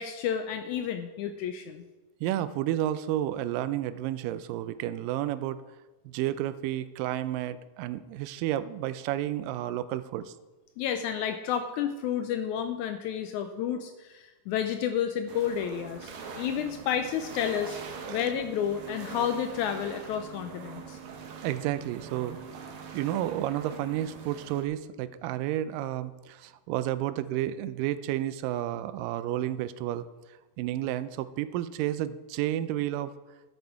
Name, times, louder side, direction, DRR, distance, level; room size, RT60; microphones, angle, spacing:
voice 1, 0.0-1.8 10.8-17.8 18.1-21.0, left 9 dB, 80° left, 8 dB, 1.8 m, -31 dB
voice 2, 2.2-5.6 6.1-10.3 18.1-18.3 21.4-22.4 22.9-30.1 30.6-33.1, right 13 dB, 85° right, 14 dB, 2.2 m, -31 dB
sound 1, 15.3-24.7, right 6 dB, 65° right, 2.3 m, -43 dB
11.5 x 8.3 x 4.5 m, 1.2 s
omnidirectional pair, 3.8 m